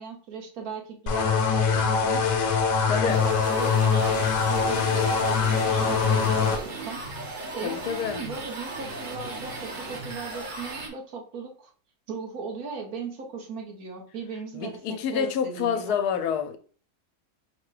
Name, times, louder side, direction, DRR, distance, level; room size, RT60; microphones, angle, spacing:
voice 1, 0.0-2.2 2.9-7.0 7.5-11.7 12.1-16.0, right 5 dB, 70° right, 1.5 m, -37 dB
sound 1, 1.1-6.6, left 5 dB, 65° left, 1.0 m, -23 dB
voice 2, 2.9-3.2 7.6-8.2 14.5-16.6, left 7 dB, 85° left, 1.1 m, -28 dB
sound 2, 3.1-10.9, right 2 dB, 40° right, 0.8 m, -36 dB
4.7 x 2.2 x 4.8 m
omnidirectional pair, 1.6 m